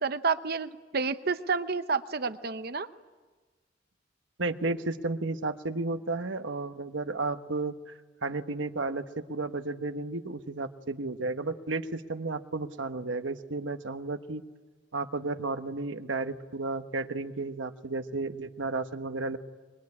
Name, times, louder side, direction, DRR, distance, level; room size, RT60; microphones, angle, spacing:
voice 1, 0.0-2.9, right 4 dB, 55° right, 11 dB, 0.8 m, -30 dB
voice 2, 4.4-14.4 14.9-19.4, right 3 dB, 80° right, 9 dB, 1.2 m, -33 dB
25.0 x 23.0 x 9.8 m, 1.3 s
head